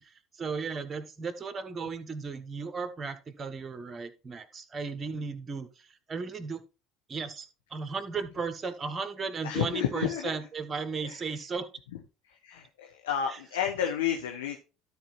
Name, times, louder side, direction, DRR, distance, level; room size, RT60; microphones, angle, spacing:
voice 1, 0.4-6.6 7.1-11.7 13.3-13.4, right 4 dB, 30° right, 10 dB, 1.5 m, -35 dB
voice 2, 9.4-10.3 11.0-11.3 12.3-14.6, left 9 dB, 80° left, 3 dB, 1.1 m, -31 dB
12.5 x 4.5 x 4.4 m, 0.32 s
hypercardioid pair, 70°, 0 cm